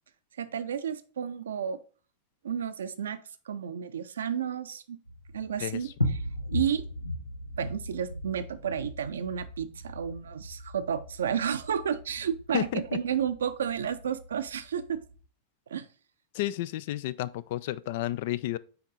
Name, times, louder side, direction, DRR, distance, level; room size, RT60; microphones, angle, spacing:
voice 1, 0.4-1.8 2.4-3.2 3.5-5.0 5.3-6.2 6.5-6.8 7.6-15.0 15.7-15.9, right 8 dB, 65° right, 0.5 m, -32 dB
sound 1, 5.1-15.2, left 1 dB, 85° left, 0.9 m, -38 dB
voice 2, 5.6-5.9 12.5-13.0 16.3-18.6, left 14 dB, 50° left, 0.3 m, -31 dB
5.8 x 4.5 x 3.8 m
figure-of-eight pair, 90°, 0 cm